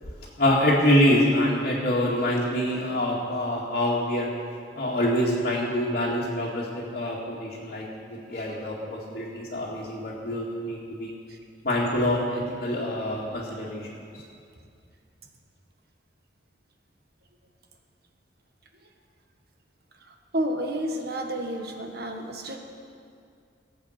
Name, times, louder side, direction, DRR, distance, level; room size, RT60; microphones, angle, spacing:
voice 1, 0.4-4.3 4.8-11.1 11.6-13.9, left 1 dB, 50° left, -7 dB, 2.1 m, -25 dB
voice 2, 20.3-22.6, right 1 dB, 60° right, 3 dB, 1.4 m, -30 dB
18.0 x 8.1 x 6.5 m, 2.4 s
head